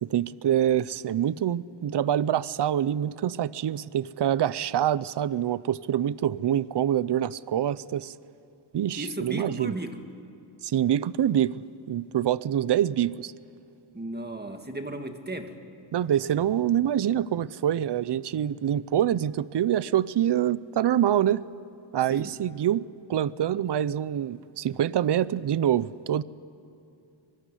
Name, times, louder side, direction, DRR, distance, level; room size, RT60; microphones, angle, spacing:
voice 1, 0.0-8.1 8.7-9.7 10.6-11.5 11.9-13.3 15.9-21.4 21.9-22.8 23.1-26.2, right 10 dB, 60° right, 19 dB, 0.6 m, -25 dB
voice 2, 9.0-10.1 13.9-15.6 22.1-22.4, right 1 dB, 20° right, 6 dB, 2.0 m, -35 dB
24.0 x 21.5 x 9.9 m, 2.7 s
wide cardioid pair, 100°, 48 cm